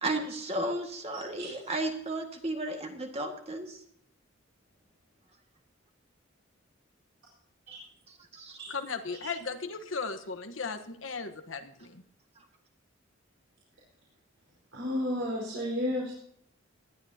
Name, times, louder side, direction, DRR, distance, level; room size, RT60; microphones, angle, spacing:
voice 1, 0.0-3.8 8.1-8.7, right 2 dB, 30° right, 3 dB, 1.9 m, -34 dB
voice 2, 8.7-12.0, left 4 dB, 85° left, 9 dB, 1.2 m, -36 dB
voice 3, 14.7-16.1, left 1 dB, 80° right, -5 dB, 4.6 m, -32 dB
19.0 x 11.5 x 2.8 m, 0.68 s
head